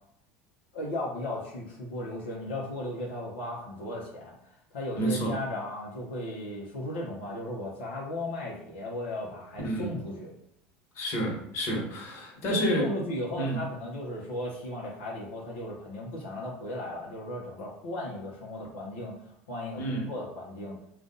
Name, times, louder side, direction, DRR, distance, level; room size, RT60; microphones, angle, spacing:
voice 1, 0.7-10.3 12.5-20.8, left 1 dB, 90° left, -4 dB, 0.9 m, -36 dB
voice 2, 5.0-5.4 9.6-9.9 10.9-12.9 13.3-13.6 19.8-20.1, right 1 dB, 55° left, -1 dB, 1.4 m, -29 dB
3.8 x 2.5 x 3.8 m, 0.72 s
supercardioid pair, 100°, 5 cm